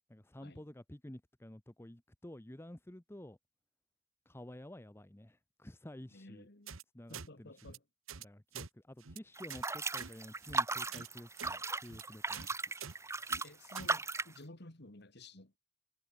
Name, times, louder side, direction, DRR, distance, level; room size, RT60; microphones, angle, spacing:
voice 1, 0.1-3.4 4.3-6.5 6.9-7.8 8.2-12.5, left 1 dB, 10° left, 0.8 m, -51 dB
voice 2, 6.1-6.8 7.1-7.8 13.4-15.6, left 2 dB, 55° left, 2.5 m, -53 dB
sound 1, 6.7-6.8 7.1-7.3 7.6-7.8 8.1-8.2 8.5-8.7 9.0-9.2 9.5-9.7 9.9-10.1 10.4-10.6 10.9-11.1 11.4-11.5 11.8-12.0 12.3-12.5 12.8-12.9 13.2-13.4 13.7-13.9, right 7 dB, 85° right, 1.3 m, -46 dB
sound 2, 9.4-14.4, right 3 dB, 15° right, 1.4 m, -37 dB
head